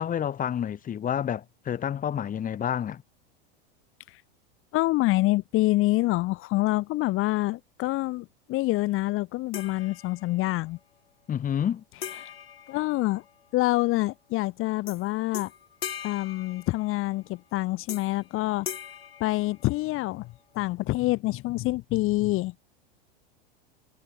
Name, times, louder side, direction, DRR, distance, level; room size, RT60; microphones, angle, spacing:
voice 1, 0.0-3.0 11.3-11.8, left 9 dB, 30° left, 2.2 m, -29 dB
voice 2, 4.7-10.8 12.2-12.3 12.7-13.2 13.5-15.5 16.0-18.7 19.2-22.5, left 18 dB, 45° left, 2.1 m, -26 dB
sound 1, 9.5-10.5 12.0-13.6 14.9-15.0 15.3-17.2 17.9-18.3 18.7-20.1, left 8 dB, 90° left, 7.4 m, -40 dB
hypercardioid pair, 100°, 29 cm